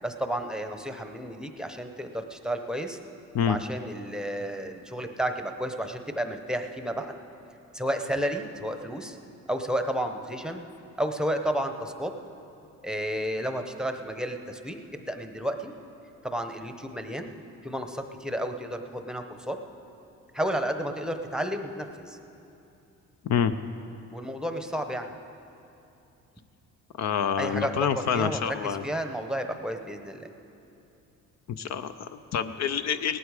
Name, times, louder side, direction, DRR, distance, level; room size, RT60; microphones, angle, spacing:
voice 1, 0.0-3.0 3.5-7.2 7.7-9.2 9.5-10.6 11.0-12.1 12.8-15.7 16.2-17.4 17.6-19.6 20.3-22.2 24.1-25.1 27.4-30.3, equal, ahead, 6 dB, 0.8 m, -32 dB
voice 2, 23.2-23.6 27.0-28.8 31.5-33.2, left 7 dB, 55° left, 10 dB, 0.6 m, -27 dB
18.0 x 12.0 x 4.9 m, 2.9 s
cardioid pair, 100°, 32 cm